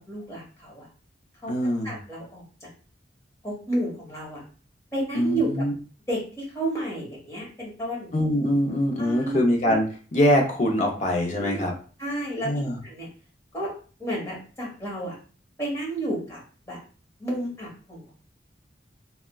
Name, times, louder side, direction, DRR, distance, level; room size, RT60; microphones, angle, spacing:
voice 1, 0.1-0.9 1.4-1.5 1.8-2.4 3.4-4.4 4.9-5.5 6.1-8.1 9.0-9.4 11.4-11.6 12.0-12.5 12.8-13.1 13.5-13.7 14.0-15.2 15.6-16.4 16.7-16.8 17.2-18.1, right 1 dB, 15° left, -5 dB, 1.1 m, -31 dB
voice 2, 1.5-2.0 5.1-5.7 8.1-9.8 10.1-11.7 12.4-12.8, equal, 40° left, 1 dB, 0.5 m, -23 dB
3.3 x 2.1 x 2.2 m, 0.39 s
head